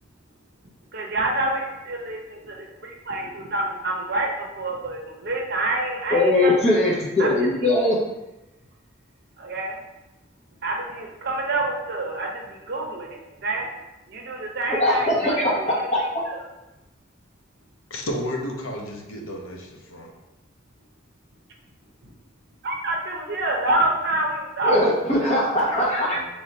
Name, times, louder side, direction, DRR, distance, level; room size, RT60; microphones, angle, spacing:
voice 1, 0.9-6.5 7.2-7.8 9.4-9.8 10.6-13.7 14.1-16.1 22.0-22.1 22.6-24.8, right 2 dB, 50° right, 0 dB, 0.7 m, -27 dB
voice 2, 6.1-8.0 14.7-15.5 15.9-16.2 24.6-26.2, left 1 dB, 30° left, -4 dB, 1.0 m, -21 dB
voice 3, 17.9-20.1 26.1-26.3, equal, 80° left, 0 dB, 0.7 m, -32 dB
3.4 x 2.7 x 4.2 m, 0.99 s
head